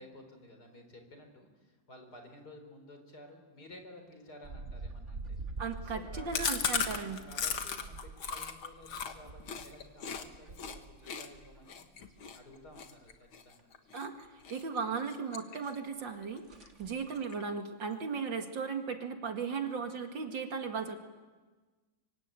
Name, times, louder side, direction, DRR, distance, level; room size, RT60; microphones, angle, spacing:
voice 1, 0.0-5.4 5.8-12.0 12.3-13.7 16.7-17.0, left 1 dB, 50° left, 5 dB, 4.6 m, -54 dB
sound 1, 4.4-11.6 11.9-12.8 13.1-13.2 13.6-13.7 15.8-15.9 16.2-16.3 16.4-17.0, right 3 dB, 40° right, 1.9 m, -46 dB
voice 2, 5.6-7.2 13.9-16.4 16.8-21.0, right 5 dB, 65° right, 5 dB, 2.7 m, -36 dB
Chewing mastication, 6.3-10.2 10.6-10.8 11.1-14.1 14.5-14.8 15.1-15.9 16.2-16.3 16.6-16.7 17.0-17.6, left 6 dB, 90° left, 2.4 m, -36 dB
24.5 x 24.5 x 9.1 m, 1.3 s
omnidirectional pair, 2.2 m